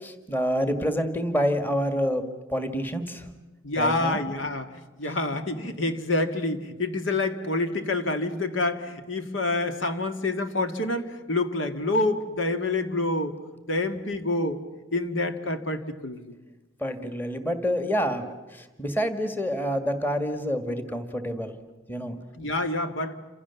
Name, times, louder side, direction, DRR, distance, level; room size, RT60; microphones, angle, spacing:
voice 1, 0.0-2.2 2.5-3.3 3.8-4.2 16.8-21.6 21.9-22.2, equal, 10° left, 8 dB, 1.8 m, -27 dB
voice 2, 3.6-13.3 13.7-14.6 14.9-16.4 22.4-23.2, left 2 dB, 80° left, 7 dB, 2.1 m, -27 dB
29.0 x 26.5 x 7.1 m, 1.2 s
head